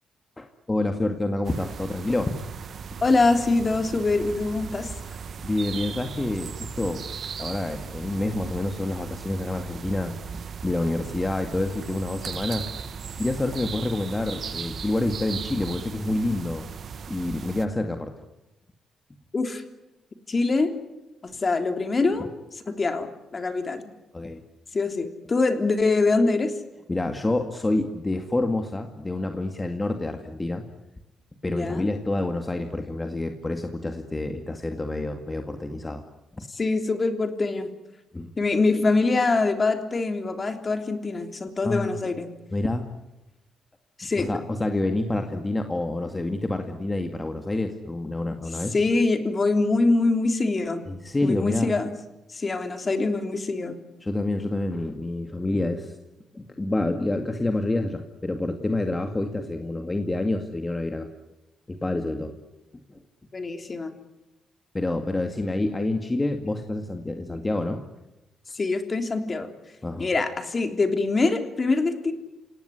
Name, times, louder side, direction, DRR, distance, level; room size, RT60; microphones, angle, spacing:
voice 1, 0.4-2.3 5.4-7.0 7.4-10.1 10.6-12.7 13.2-16.7 17.1-18.1 24.1-24.4 26.9-30.6 31.4-36.0 36.4-36.5 38.1-38.3 41.6-42.0 42.5-42.9 44.2-48.7 50.9-51.7 54.0-56.0 56.3-61.1 61.7-62.3 64.7-67.8 69.8-70.1, left 2 dB, 20° left, 5 dB, 2.1 m, -28 dB
sound 1, 1.4-17.7, right 6 dB, 60° right, 1.3 m, -37 dB
voice 2, 3.0-4.9 19.3-19.6 20.3-20.7 21.2-22.3 22.5-23.9 24.7-26.5 31.5-31.9 36.5-37.7 38.4-42.3 44.0-44.3 48.7-50.8 51.2-51.9 52.3-53.8 63.3-63.9 68.5-69.5 70.0-72.1, left 3 dB, 40° left, 6 dB, 3.3 m, -24 dB
27.0 x 18.0 x 9.9 m, 1.0 s
supercardioid pair, 65°, 0 cm